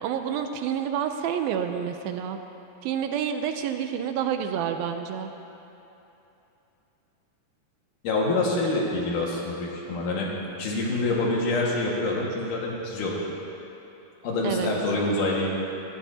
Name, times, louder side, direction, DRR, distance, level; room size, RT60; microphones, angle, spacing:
voice 1, 0.0-2.4 2.8-5.3 14.4-14.7, right 8 dB, 80° right, 6 dB, 2.4 m, -28 dB
voice 2, 8.0-10.3 10.6-13.2 14.2-15.5, left 2 dB, 60° left, -3 dB, 3.2 m, -26 dB
19.0 x 14.5 x 2.8 m, 3.0 s
omnidirectional pair, 4.3 m